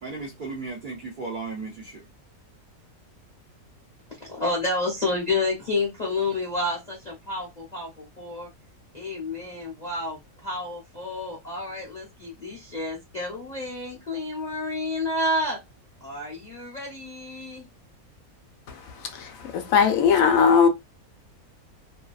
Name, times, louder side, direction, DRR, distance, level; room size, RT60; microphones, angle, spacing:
voice 1, 0.0-2.0, right 3 dB, 65° right, 0.5 m, -35 dB
voice 2, 4.2-8.5 8.9-15.6 16.0-17.7, left 2 dB, 40° left, 0.7 m, -30 dB
voice 3, 19.2-20.7, left 6 dB, 70° left, 0.9 m, -19 dB
2.7 x 2.3 x 2.3 m
omnidirectional pair, 1.6 m